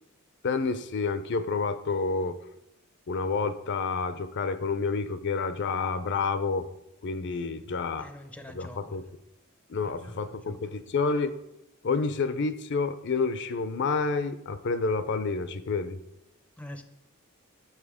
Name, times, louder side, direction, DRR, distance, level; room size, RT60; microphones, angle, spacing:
voice 1, 0.4-2.4 3.1-6.7 7.0-8.1 8.5-9.0 9.7-11.3 11.8-16.0, left 4 dB, 55° left, 12 dB, 0.5 m, -29 dB
voice 2, 8.0-9.0 9.8-10.7 16.6-16.8, left 1 dB, 5° left, 8 dB, 0.5 m, -45 dB
7.3 x 6.3 x 4.9 m, 0.86 s
head